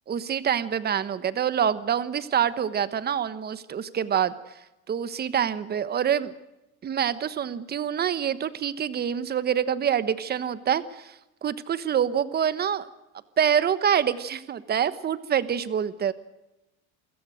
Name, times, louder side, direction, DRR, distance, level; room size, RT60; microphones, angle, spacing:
voice 1, 0.1-4.6 4.9-6.3 6.8-12.9 13.4-16.1, right 8 dB, 30° right, 14 dB, 1.2 m, -26 dB
28.0 x 17.0 x 6.5 m, 0.98 s
cardioid pair, 135°, 34 cm